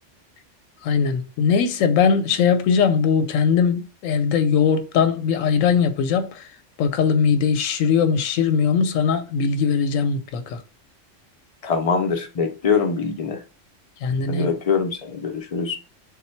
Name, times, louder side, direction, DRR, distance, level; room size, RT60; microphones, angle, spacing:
voice 1, 0.8-6.5 6.8-10.6 14.0-14.5, left 6 dB, 90° left, 1.0 m, -20 dB
voice 2, 11.6-13.4 14.3-15.8, left 5 dB, 45° left, 0.4 m, -23 dB
3.7 x 2.2 x 4.2 m
omnidirectional pair, 1.3 m